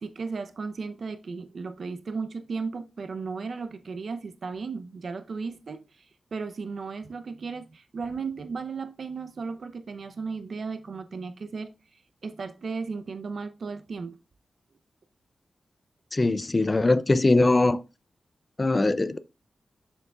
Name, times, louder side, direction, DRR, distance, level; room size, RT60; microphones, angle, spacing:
voice 1, 0.0-5.8 6.3-11.7 12.2-14.2, right 4 dB, 65° right, 0.7 m, -35 dB
voice 2, 16.1-17.8 18.6-19.2, left 2 dB, 25° left, 0.4 m, -21 dB
6.9 x 6.6 x 2.4 m
wide cardioid pair, 115°, 0 cm